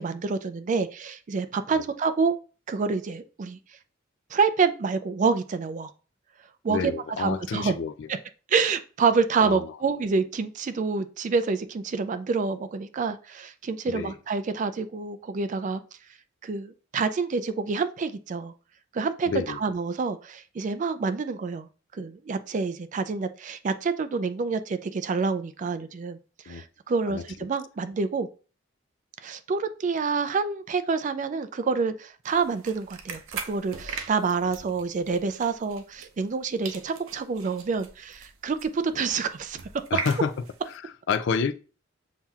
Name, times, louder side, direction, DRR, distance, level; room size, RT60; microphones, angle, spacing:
voice 1, 0.0-2.3 2.7-3.6 4.3-5.9 6.6-6.9 7.2-7.8 8.5-15.8 16.4-18.5 18.9-21.7 21.9-26.2 26.5-28.3 29.2-39.6, right 4 dB, 40° right, 0.3 m, -27 dB
voice 2, 6.7-8.1 9.4-9.7 13.9-14.2 19.3-19.6 26.5-26.6 27.1-27.2 39.9-40.3 40.7-41.5, left 5 dB, 60° left, 0.3 m, -29 dB
sound 1, 32.2-36.4 36.6-40.7, right 6 dB, 85° right, 0.6 m, -40 dB
7.1 x 2.8 x 2.3 m
head